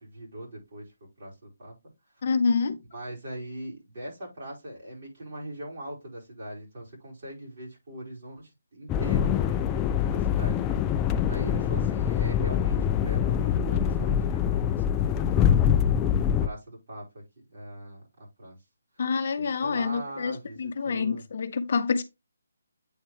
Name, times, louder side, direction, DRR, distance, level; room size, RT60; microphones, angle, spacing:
voice 1, 0.0-1.7 2.9-9.7 10.1-10.8 11.3-15.9 16.4-17.2 17.5-18.0 18.4-18.5 19.4-21.3, right 1 dB, 45° right, 5.0 m, -41 dB
voice 2, 2.2-2.8 19.0-22.0, left 5 dB, 45° left, 0.7 m, -27 dB
sound 1, 8.9-16.5, left 9 dB, 15° left, 0.4 m, -24 dB
8.6 x 4.4 x 3.1 m
hypercardioid pair, 165°, 0 cm